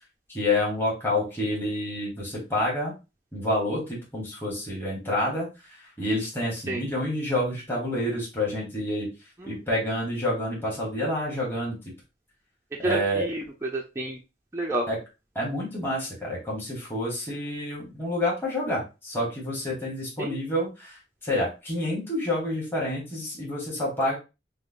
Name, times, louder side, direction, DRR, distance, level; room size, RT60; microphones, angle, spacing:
voice 1, 0.3-2.9 3.3-9.1 9.4-11.8 12.8-13.3 14.9-15.0 15.3-24.1, left 1 dB, 10° left, -5 dB, 1.2 m, -28 dB
voice 2, 12.8-14.2 14.5-14.9 20.2-20.4, right 1 dB, 15° right, -1 dB, 0.4 m, -29 dB
4.7 x 2.1 x 2.5 m, 0.28 s
head